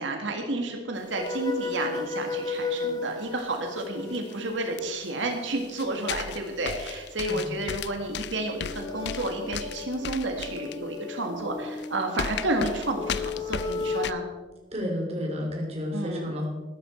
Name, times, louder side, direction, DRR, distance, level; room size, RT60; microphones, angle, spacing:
voice 1, 0.0-14.2 15.9-16.3, right 2 dB, 90° right, 4 dB, 1.7 m, -31 dB
sound 1, 1.1-5.0 8.4-14.1, left 4 dB, 20° left, 1.1 m, -35 dB
sound 2, 1.3-1.8 2.1-2.2 3.4-3.5 3.8-3.9 4.1-4.3 4.8-4.9 5.3-10.8 11.4-11.5 11.8-11.9 12.2-14.1, left 7 dB, 60° left, 0.4 m, -36 dB
voice 2, 14.7-16.5, left 1 dB, 35° right, 0 dB, 3.2 m, -31 dB
14.0 x 12.0 x 4.3 m, 1.3 s
head